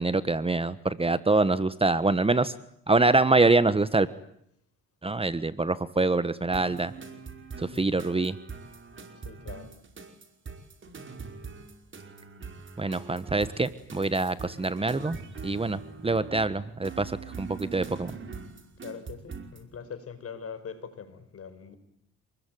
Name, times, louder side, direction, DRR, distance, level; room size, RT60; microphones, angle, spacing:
voice 1, 0.0-2.5 2.9-4.1 5.0-6.9 7.6-8.4 12.8-15.2 15.4-18.1, right 3 dB, 20° right, 14 dB, 1.3 m, -25 dB
sound 1, 6.5-19.7, right 5 dB, 40° right, 5.3 m, -43 dB
voice 2, 7.7-8.0 9.2-9.7 18.8-21.7, left 6 dB, 50° left, 11 dB, 5.5 m, -42 dB
28.0 x 21.5 x 9.3 m, 0.72 s
cardioid pair, 90°, 30 cm